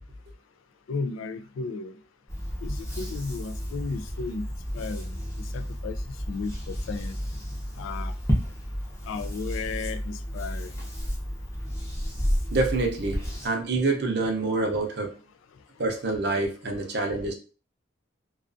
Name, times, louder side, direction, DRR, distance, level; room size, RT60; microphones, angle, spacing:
voice 1, 0.9-1.9 2.6-4.5 4.7-5.2 5.5-6.0 6.3-7.2 7.8-8.1 9.0-10.9, left 4 dB, 85° left, 11 dB, 0.3 m, -34 dB
sound 1, 2.3-13.5, equal, 15° left, 0.6 m, -32 dB
voice 2, 12.5-15.1 15.8-17.3, right 3 dB, 55° right, 3 dB, 0.6 m, -26 dB
2.3 x 2.3 x 2.5 m, 0.36 s
head